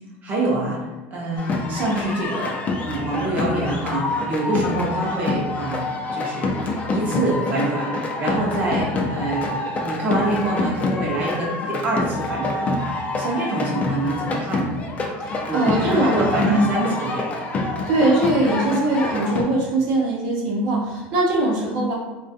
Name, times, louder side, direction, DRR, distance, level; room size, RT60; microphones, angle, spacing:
voice 1, 0.2-2.6 2.8-5.8 6.1-9.4 9.8-14.8 15.5-17.3, right 1 dB, 25° right, -4 dB, 0.6 m, -25 dB
sound 1, 1.4-19.4, left 2 dB, 25° left, 0.3 m, -26 dB
voice 2, 15.2-16.7 17.9-21.9, right 2 dB, 65° right, -3 dB, 0.7 m, -21 dB
2.3 x 2.2 x 2.6 m, 1.1 s
supercardioid pair, 145°, 6 cm